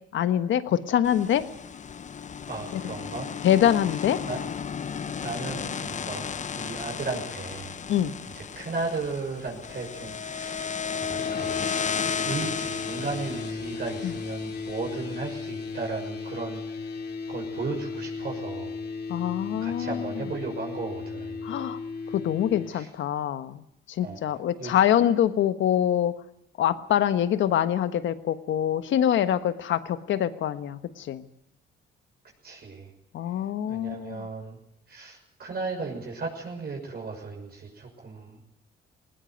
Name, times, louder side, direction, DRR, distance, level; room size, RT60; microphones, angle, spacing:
voice 1, 0.1-1.5 2.7-2.8 3.4-4.2 7.9-8.1 14.0-14.1 19.1-20.0 21.4-21.8 22.1-23.6 23.9-26.1 26.6-31.2 33.1-34.3, left 10 dB, 75° left, 11 dB, 1.4 m, -25 dB
sound 1, 1.0-15.2, left 6 dB, 40° left, 0.9 m, -34 dB
voice 2, 2.4-3.3 4.2-4.4 5.2-6.3 6.5-7.8 8.3-10.7 11.0-11.7 12.2-16.9 17.3-18.8 19.6-21.4 22.0-22.2 22.7-22.9 24.0-24.2 24.6-24.7 32.4-32.9 33.7-34.6 34.9-38.6, right 4 dB, 50° right, 1 dB, 6.4 m, -35 dB
sound 2, 11.2-22.7, left 4 dB, 55° left, 2.5 m, -36 dB
19.5 x 19.0 x 9.3 m, 0.73 s
cardioid pair, 90°, 20 cm